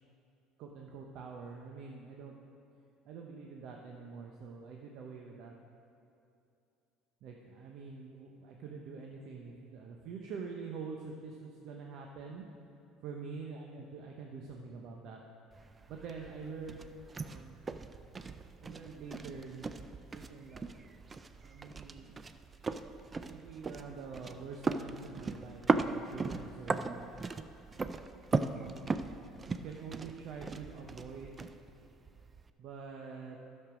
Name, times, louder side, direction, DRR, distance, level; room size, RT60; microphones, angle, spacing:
voice 1, 0.6-2.4 3.0-5.5 7.2-12.4 13.0-15.2 15.9-17.6 18.6-19.8 20.1-20.7 21.4-22.2 23.2-27.1 28.3-29.0 29.5-31.4 32.6-33.4, right 5 dB, 60° right, 1 dB, 0.8 m, -46 dB
sound 1, 15.5-32.5, right 4 dB, 30° right, 0.5 m, -38 dB
12.0 x 6.6 x 5.1 m, 2.6 s
hypercardioid pair, 75°, 0 cm